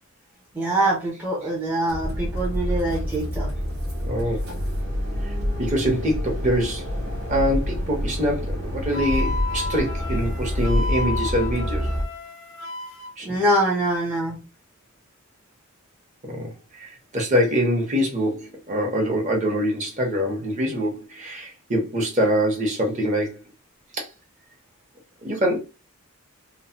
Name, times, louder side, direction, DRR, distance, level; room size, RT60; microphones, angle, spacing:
voice 1, 0.5-3.5 13.2-14.4, right 1 dB, 10° right, 0.6 m, -24 dB
sound 1, 1.9-12.0, equal, 80° right, 1.2 m, -27 dB
voice 2, 4.0-4.5 5.2-5.3 5.6-6.9 7.3-11.9 13.2-13.4 16.2-23.4 24.0-24.1 25.2-25.6, equal, 35° right, 1.0 m, -24 dB
Wind instrument woodwind instrument, 8.9-13.1, left 3 dB, 80° left, 0.6 m, -32 dB
3.0 x 2.2 x 2.8 m
head